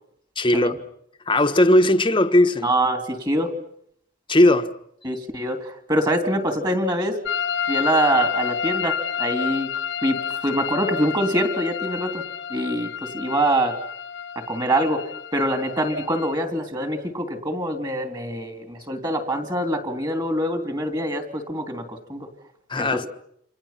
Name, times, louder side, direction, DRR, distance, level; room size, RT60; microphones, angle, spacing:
voice 1, 0.4-0.8 1.3-2.7 4.3-4.8 22.7-23.1, left 1 dB, 25° left, 1.3 m, -18 dB
voice 2, 2.6-3.5 5.0-7.2 7.7-9.7 10.0-12.2 12.5-13.8 14.5-15.0 15.3-22.3 22.8-23.0, right 1 dB, 20° right, 3.3 m, -24 dB
sound 1, 7.2-16.3, left 7 dB, 70° left, 1.2 m, -29 dB
29.5 x 26.5 x 5.9 m
head